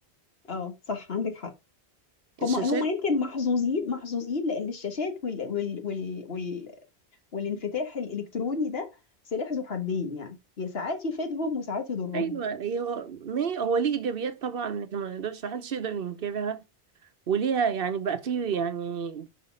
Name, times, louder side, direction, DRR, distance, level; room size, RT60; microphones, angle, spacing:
voice 1, 0.4-1.5 2.4-6.7 7.3-8.9 9.3-12.4, left 4 dB, 70° left, 1.6 m, -30 dB
voice 2, 2.4-2.8 12.1-16.6 17.3-19.3, right 6 dB, 65° right, 0.9 m, -29 dB
5.6 x 5.5 x 5.1 m
omnidirectional pair, 1.1 m